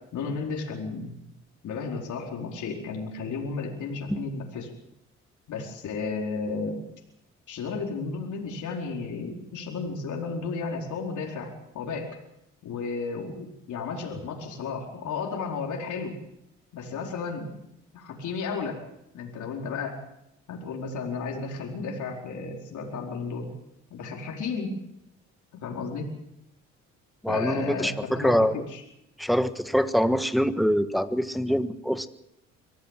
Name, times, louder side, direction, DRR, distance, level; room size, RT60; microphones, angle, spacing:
voice 1, 0.1-1.2 1.6-4.7 5.5-6.8 7.5-12.1 12.6-16.2 16.7-17.5 17.9-18.8 19.1-20.0 20.5-23.5 23.9-24.8 25.6-26.1 27.3-28.8, left 4 dB, 75° left, 0 dB, 4.6 m, -33 dB
voice 2, 27.2-28.6 29.2-32.1, equal, ahead, 9 dB, 1.5 m, -24 dB
25.0 x 16.0 x 7.5 m, 0.82 s
cardioid pair, 90°, 30 cm